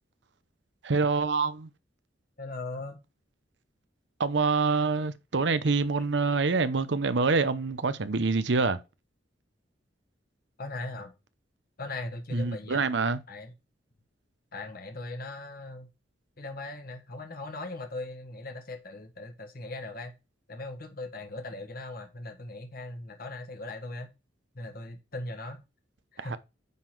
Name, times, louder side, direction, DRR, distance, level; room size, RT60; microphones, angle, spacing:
voice 1, 0.8-1.7 4.2-8.8 12.3-13.2 26.2-26.4, right 4 dB, 65° right, 0.7 m, -26 dB
voice 2, 2.4-3.0 10.6-11.1 11.8-12.8 13.3-13.5 14.5-15.9 16.4-20.1 20.5-24.1 24.5-25.6 26.1-26.4, left 2 dB, 50° left, 1.4 m, -39 dB
9.3 x 3.9 x 4.6 m
head